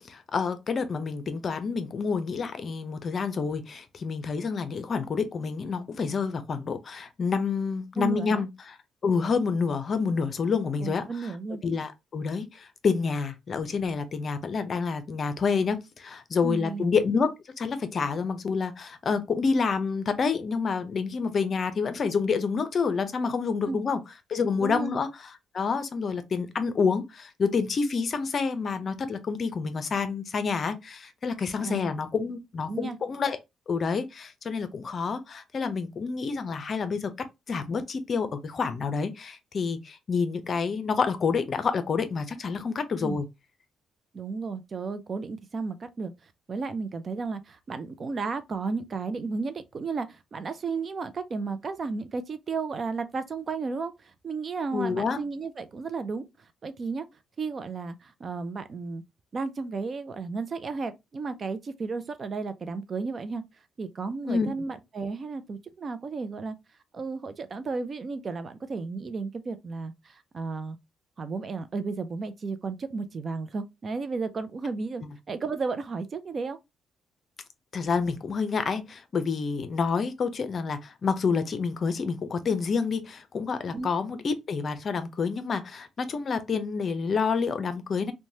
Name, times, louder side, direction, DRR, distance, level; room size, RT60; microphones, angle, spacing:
voice 1, 0.0-8.8 9.0-11.3 11.6-24.0 24.3-25.1 25.5-33.4 33.7-37.1 37.5-43.3 54.7-55.2 64.3-64.5 77.7-88.1, left 5 dB, 45° left, 0.5 m, -28 dB
voice 2, 8.0-8.5 10.8-11.6 16.4-16.9 23.6-23.8 24.6-24.9 31.6-31.9 32.7-33.0 43.0-43.2 44.1-57.1 57.4-59.0 59.3-63.4 63.8-66.6 66.9-70.8 71.2-76.6 83.7-83.9, right 4 dB, 40° right, 0.4 m, -33 dB
3.1 x 2.2 x 2.6 m
cardioid pair, 90°, 0 cm